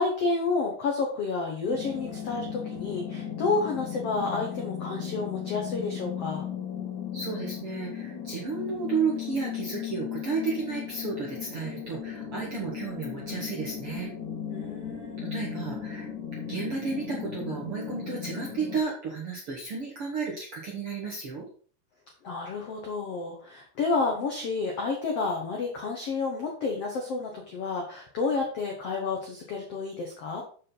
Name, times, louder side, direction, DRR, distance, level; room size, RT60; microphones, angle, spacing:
voice 1, 0.0-6.4 14.5-15.3 22.2-30.4, left 4 dB, 80° left, 1 dB, 1.3 m, -30 dB
sound 1, 1.7-18.8, left 8 dB, 50° left, 3.2 m, -36 dB
voice 2, 7.1-14.1 15.2-16.1 16.5-21.5, right 5 dB, 60° right, -3 dB, 1.5 m, -32 dB
7.4 x 6.8 x 4.0 m, 0.43 s
omnidirectional pair, 4.8 m